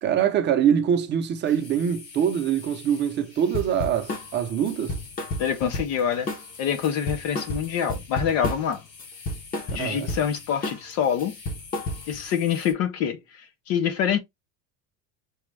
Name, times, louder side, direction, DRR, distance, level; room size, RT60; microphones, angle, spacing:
voice 1, 0.0-5.0 9.8-10.1, right 8 dB, 25° right, 0.7 m, -24 dB
sound 1, 1.4-12.7, left 4 dB, 90° left, 3.3 m, -46 dB
sound 2, 3.5-4.3 4.7-6.0 6.3-6.6 6.8-8.7 9.0-10.3 10.6-10.9 11.2-12.2, left 1 dB, 20° left, 0.9 m, -31 dB
voice 2, 5.4-6.3 6.6-8.8 9.7-11.4 12.1-14.2, left 8 dB, 40° left, 0.6 m, -26 dB
6.2 x 2.3 x 3.2 m
cardioid pair, 165°, 39 cm